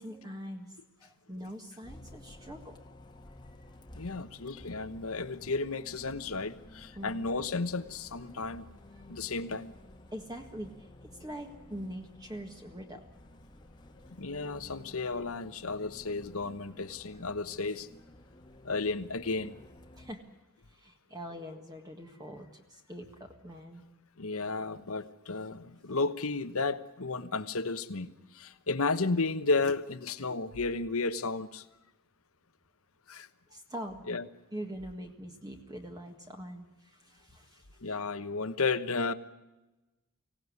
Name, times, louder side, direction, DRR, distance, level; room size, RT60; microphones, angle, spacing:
voice 1, 0.0-2.8 7.0-7.3 9.0-9.1 10.1-13.0 19.9-20.2 20.7-23.8 33.5-34.0 34.5-37.7, equal, 20° right, 3 dB, 1.7 m, -43 dB
Bus, 1.9-20.1, left 1 dB, 20° left, 1.5 m, -53 dB
voice 2, 4.0-8.6 9.1-9.7 14.1-17.9 18.6-19.6 24.2-31.6 33.1-33.3 34.1-34.3 37.8-39.1, left 3 dB, 70° left, 12 dB, 1.2 m, -33 dB
24.5 x 17.5 x 9.6 m, 1.1 s
head